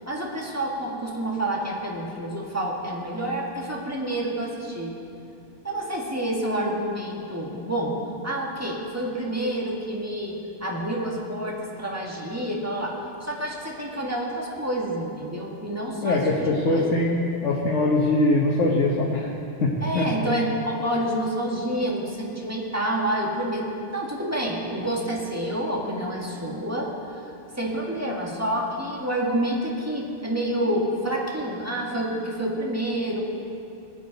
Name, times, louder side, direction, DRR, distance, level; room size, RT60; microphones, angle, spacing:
voice 1, 0.1-5.0 5.6-8.0 8.2-17.0 19.8-26.9 27.6-33.2, right 1 dB, 15° right, -3 dB, 1.8 m, -28 dB
voice 2, 16.0-19.3 19.6-20.1, left 2 dB, 85° left, -2 dB, 1.5 m, -22 dB
21.0 x 8.4 x 4.1 m, 2.6 s
omnidirectional pair, 1.2 m